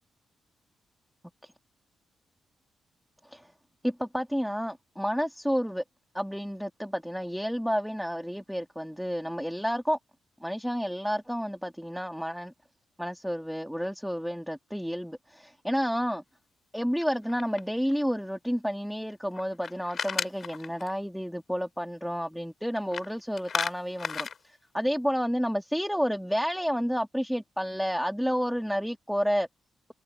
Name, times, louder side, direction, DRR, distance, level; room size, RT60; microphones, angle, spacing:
voice 1, 3.8-5.8 6.1-10.0 10.4-12.5 13.0-16.2 16.7-29.5, equal, ahead, 1.8 m, -30 dB
sound 1, 17.0-17.9 19.3-20.9 22.7-23.1 23.4-24.4, left 6 dB, 55° left, 3.7 m, -34 dB
cardioid pair, 80°, 0 cm